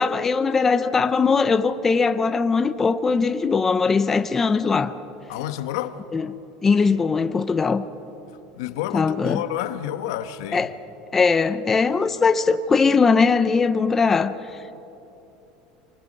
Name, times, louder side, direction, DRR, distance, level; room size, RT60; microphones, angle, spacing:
voice 1, 0.0-5.0 6.1-6.3 6.6-7.8 8.9-9.4 10.5-10.7 11.1-14.3, left 5 dB, 15° left, 0.5 m, -20 dB
voice 2, 5.3-6.0 8.5-10.7, left 12 dB, 85° left, 1.1 m, -29 dB
25.0 x 23.5 x 5.4 m
cardioid pair, 160°, 2 cm